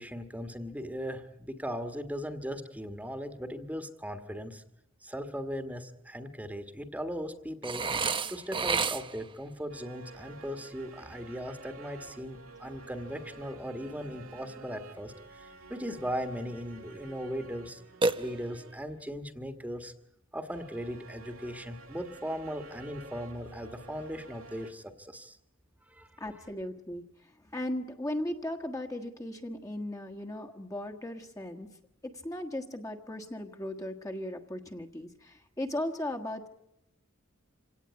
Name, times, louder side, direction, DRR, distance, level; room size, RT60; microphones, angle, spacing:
voice 1, 0.0-4.6 5.0-7.9 8.3-17.8 18.2-19.9 20.3-25.4 25.9-26.1, equal, 5° right, 7 dB, 1.5 m, -38 dB
Burping eructation, 7.6-9.3 18.0-18.8, right 4 dB, 25° right, 0.8 m, -30 dB
sound 1, 9.7-19.0 20.5-24.7, right 3 dB, 85° right, 2.4 m, -50 dB
voice 2, 26.2-31.7 32.0-36.5, left 1 dB, 15° left, 5 dB, 1.5 m, -37 dB
26.5 x 17.5 x 9.6 m, 0.82 s
head